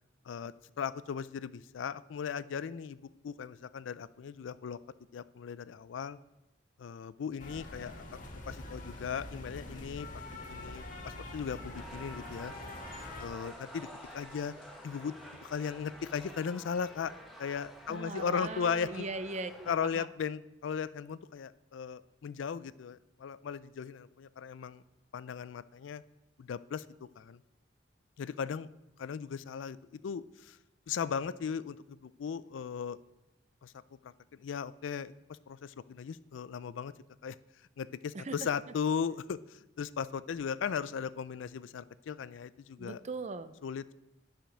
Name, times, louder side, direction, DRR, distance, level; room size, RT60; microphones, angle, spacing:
voice 1, 0.3-4.8 5.1-6.2 6.8-8.2 8.5-12.5 13.2-13.9 14.1-14.5 14.8-15.1 15.4-17.1 17.4-19.1 19.7-24.8 25.1-26.0 26.4-26.8 27.2-27.4 28.2-28.7 29.0-30.6 30.9-33.0 33.6-33.7 34.0-35.1 35.5-36.9 37.2-37.4 37.8-43.0 43.6-43.9, left 6 dB, 80° left, 17 dB, 0.4 m, -37 dB
sound 1, 7.4-13.3, left 2 dB, 45° left, 1.4 m, -45 dB
sound 2, 11.7-19.7, equal, ahead, 1.3 m, -50 dB
sound 3, 12.2-18.1, left 2 dB, 25° left, 2.2 m, -59 dB
voice 2, 17.9-20.1 38.1-38.3 42.8-43.5, right 3 dB, 40° right, 12 dB, 0.5 m, -40 dB
10.0 x 5.1 x 6.0 m, 0.94 s
head